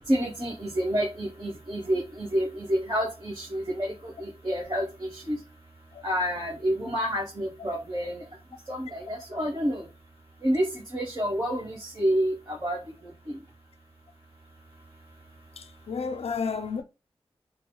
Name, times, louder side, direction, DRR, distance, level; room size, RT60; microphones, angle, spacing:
voice 1, 0.1-3.9 4.2-4.8 5.1-5.4 6.0-8.2 8.7-9.8 10.4-10.6 10.9-12.8, equal, 40° right, 1.3 m, -28 dB
voice 2, 15.6-16.8, left 5 dB, 80° left, 0.5 m, -32 dB
5.9 x 2.1 x 2.3 m
wide cardioid pair, 65°, 10 cm